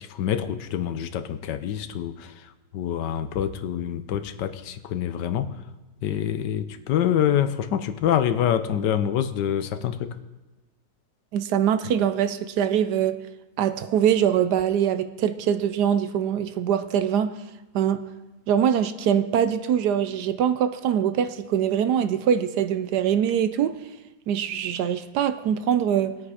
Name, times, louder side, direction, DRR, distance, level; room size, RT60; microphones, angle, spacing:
voice 1, 0.0-5.5 6.0-10.2, left 10 dB, 75° left, 1.3 m, -26 dB
voice 2, 11.3-13.2 13.6-17.3 17.7-18.0 18.5-23.8 24.3-26.2, right 9 dB, 70° right, 1.1 m, -23 dB
19.5 x 8.6 x 4.9 m
omnidirectional pair, 1.9 m